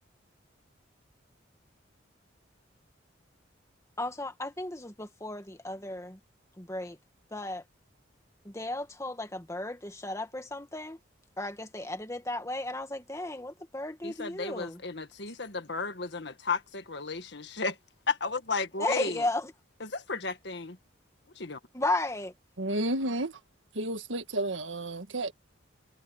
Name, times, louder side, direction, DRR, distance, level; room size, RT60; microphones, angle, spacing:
voice 1, 4.0-6.2 6.6-7.0 7.3-7.6 8.5-11.0 11.4-14.8 18.8-19.5 21.7-22.3, left 2 dB, 15° left, 1.9 m, -34 dB
voice 2, 14.0-17.8 18.1-19.2 19.8-20.8 21.3-21.6, left 4 dB, 60° left, 1.7 m, -33 dB
voice 3, 22.6-23.3 23.7-25.3, right 1 dB, 85° right, 1.7 m, -31 dB
head